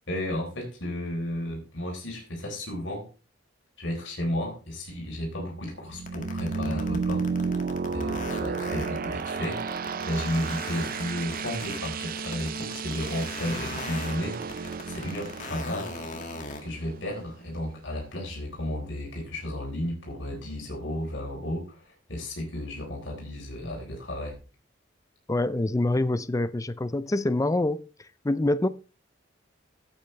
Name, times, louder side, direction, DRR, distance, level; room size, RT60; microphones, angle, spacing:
voice 1, 0.1-3.1 3.8-7.2 7.9-15.9 16.6-24.3, left 1 dB, 70° left, 3.8 m, -33 dB
sound 1, 4.8-17.5, right 5 dB, 50° right, 0.5 m, -33 dB
sound 2, 6.1-16.6, left 3 dB, 40° left, 2.0 m, -39 dB
voice 2, 25.3-27.9 28.2-28.7, left 2 dB, 15° left, 0.5 m, -25 dB
15.5 x 8.7 x 3.3 m
head